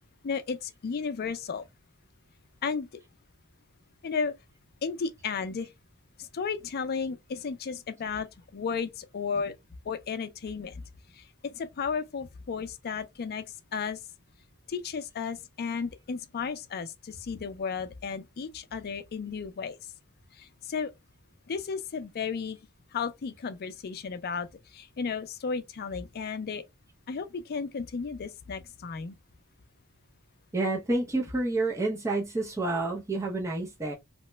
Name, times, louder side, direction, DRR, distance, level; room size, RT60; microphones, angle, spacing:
voice 1, 0.2-1.6 2.6-2.9 4.0-4.3 4.8-5.7 6.2-8.3 8.5-9.6 9.9-10.8 11.1-13.4 13.7-14.0 14.7-19.8 20.4-20.9 21.5-22.6 22.9-24.5 24.7-26.6 27.1-29.1, left 5 dB, 45° left, 0.4 m, -33 dB
voice 2, 30.5-33.9, right 2 dB, 15° right, 0.5 m, -29 dB
2.9 x 2.1 x 3.2 m
head